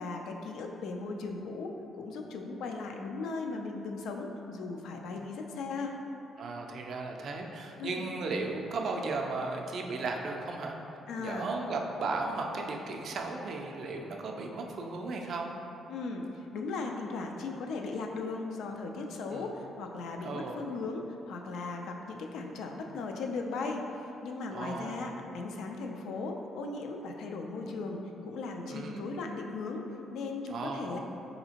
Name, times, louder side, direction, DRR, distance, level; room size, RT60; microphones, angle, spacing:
voice 1, 0.0-6.0 7.8-8.1 11.1-11.5 15.9-29.8 30.1-31.0, left 3 dB, 80° left, 2 dB, 0.3 m, -37 dB
voice 2, 6.4-10.8 11.2-15.5 19.3-19.5 20.2-20.6 24.5-25.1 28.7-29.0 30.5-31.0, right 3 dB, 60° right, 1 dB, 0.4 m, -35 dB
4.1 x 2.7 x 2.8 m, 2.9 s
cardioid pair, 90°, 0 cm